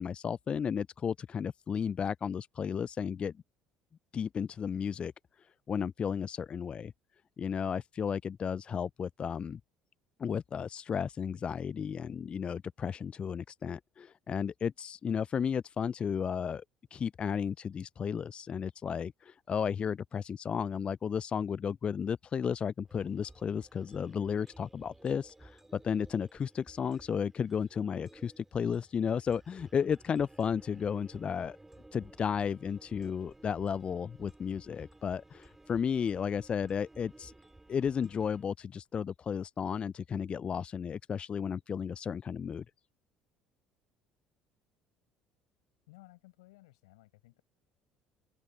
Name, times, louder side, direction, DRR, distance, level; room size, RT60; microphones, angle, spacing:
voice 1, 0.0-3.3 4.1-5.1 5.4-6.9 7.4-9.6 10.2-16.6 16.9-31.6 31.9-37.3 37.7-42.6, left 7 dB, 35° left, 0.3 m, -33 dB
sound 1, 22.9-38.4, right 2 dB, 10° right, 4.5 m, -56 dB
voice 2, 45.9-47.4, left 21 dB, 75° left, 7.9 m, -57 dB
hypercardioid pair, 60°, 3 cm